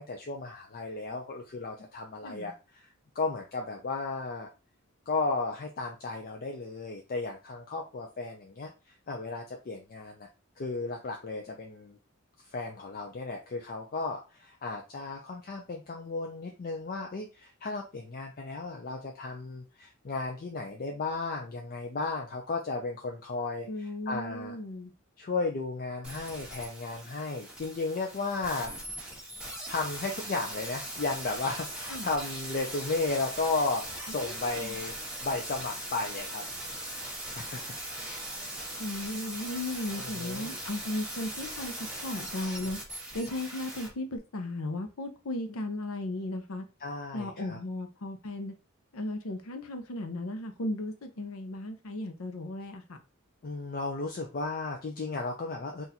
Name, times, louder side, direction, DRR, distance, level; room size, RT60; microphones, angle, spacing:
voice 1, 0.0-4.5 5.1-10.3 10.6-12.0 12.4-24.5 25.2-28.7 29.7-35.0 35.2-36.4 37.4-37.8 40.0-40.5 46.8-47.6 53.4-55.8, left 3 dB, 45° left, 0.4 m, -34 dB
voice 2, 2.2-2.5 23.7-24.9 31.9-32.1 34.1-34.8 38.8-41.7 42.0-42.8 43.1-46.6 47.1-48.5 48.9-53.0, left 1 dB, 85° left, 0.7 m, -36 dB
sound 1, 26.0-43.9 44.2-44.3, right 1 dB, 5° right, 1.1 m, -40 dB
4.0 x 2.5 x 2.8 m
head